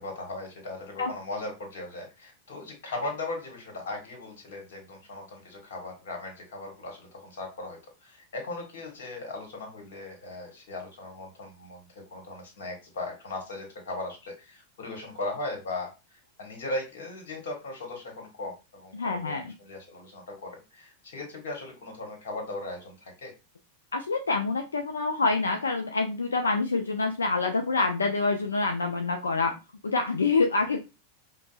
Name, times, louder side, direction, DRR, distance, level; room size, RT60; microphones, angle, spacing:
voice 1, 0.0-15.9 16.4-23.3, left 2 dB, 55° left, 2 dB, 1.3 m, -38 dB
voice 2, 18.9-19.5 23.9-29.5 29.8-30.8, left 3 dB, 75° left, 5 dB, 0.3 m, -26 dB
5.1 x 2.0 x 2.3 m, 0.28 s
figure-of-eight pair, 90°, 0 cm